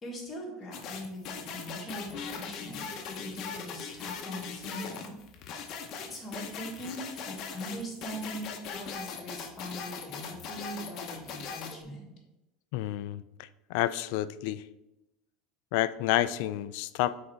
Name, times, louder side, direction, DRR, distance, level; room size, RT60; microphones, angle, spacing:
voice 1, 0.0-5.1 5.7-12.1, equal, 15° left, -3 dB, 1.7 m, -41 dB
sound 1, 0.7-11.8, left 6 dB, 40° left, 0.8 m, -40 dB
voice 2, 12.7-14.7 15.7-17.1, left 14 dB, 65° left, 15 dB, 0.3 m, -30 dB
6.4 x 4.0 x 4.6 m, 0.94 s
cardioid pair, 155°, 0 cm